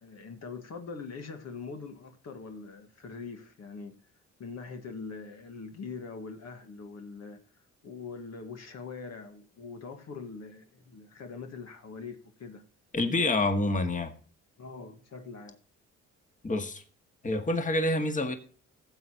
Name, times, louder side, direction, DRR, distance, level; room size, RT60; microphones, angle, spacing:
voice 1, 0.0-4.0 4.4-7.4 7.8-12.6 14.6-15.6, left 4 dB, 60° left, 1.6 m, -42 dB
voice 2, 12.9-14.1 16.4-16.8 17.2-18.4, left 2 dB, 25° left, 1.8 m, -27 dB
14.5 x 8.0 x 2.9 m
cardioid pair, 90°, 30 cm